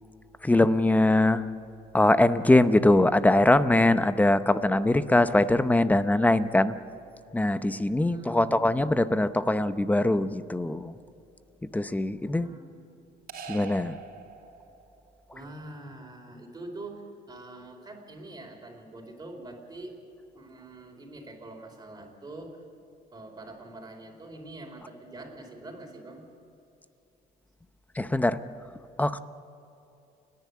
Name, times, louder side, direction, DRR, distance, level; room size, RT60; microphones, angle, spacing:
voice 1, 0.4-1.5 1.9-6.7 7.3-10.9 11.7-12.5 13.5-14.0 28.0-28.4 29.0-29.2, left 2 dB, 10° left, 13 dB, 0.7 m, -22 dB
voice 2, 8.0-8.7 12.3-13.0 15.3-19.9 20.3-22.6 23.1-26.3, right 2 dB, 20° right, 1 dB, 4.4 m, -44 dB
sound 1, 13.3-15.0, right 5 dB, 60° right, 3.3 m, -42 dB
29.5 x 10.5 x 8.5 m, 2.8 s
cardioid pair, 110°, 17 cm